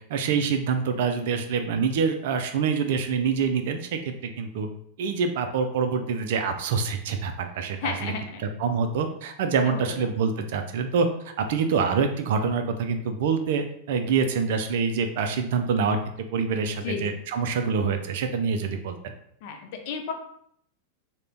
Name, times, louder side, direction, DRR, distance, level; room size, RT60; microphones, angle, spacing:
voice 1, 0.1-4.7 5.0-8.1 8.6-11.1 11.4-16.0 16.3-18.9, right 5 dB, 55° right, 7 dB, 0.4 m, -26 dB
voice 2, 7.8-8.4 9.7-10.0 16.8-17.1 19.4-20.1, left 6 dB, 50° left, 4 dB, 0.5 m, -33 dB
3.7 x 2.2 x 3.3 m, 0.68 s
figure-of-eight pair, 90°, 0 cm